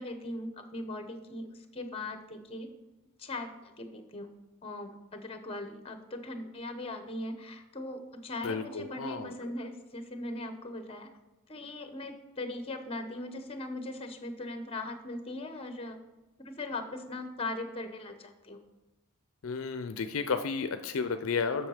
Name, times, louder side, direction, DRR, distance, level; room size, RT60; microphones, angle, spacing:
voice 1, 0.0-2.7 3.2-4.3 4.6-11.1 11.5-16.0 16.4-18.6, left 2 dB, 25° left, 7 dB, 0.9 m, -39 dB
voice 2, 8.4-9.3 19.4-21.7, left 5 dB, 65° left, 9 dB, 0.5 m, -32 dB
7.4 x 6.3 x 4.9 m, 1.1 s
head